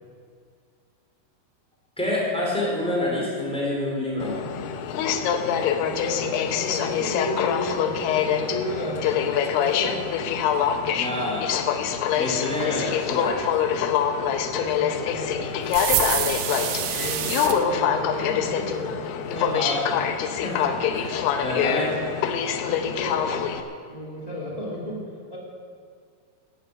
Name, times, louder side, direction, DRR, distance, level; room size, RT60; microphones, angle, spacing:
voice 1, 2.0-4.4 10.9-11.5 12.2-13.4 19.3-19.9 20.4-21.9, left 1 dB, ahead, -4 dB, 3.5 m, -27 dB
Aircraft, 4.2-23.6, left 8 dB, 85° left, 2.9 m, -25 dB
voice 2, 5.8-10.0 14.2-15.4 16.6-18.9 22.3-23.3 23.9-25.0 25.3-25.4, left 1 dB, 15° right, -4 dB, 1.5 m, -33 dB
sound 1, 15.7-17.6, right 10 dB, 85° right, 2.9 m, -26 dB
12.0 x 11.5 x 8.4 m, 2.2 s
omnidirectional pair, 4.6 m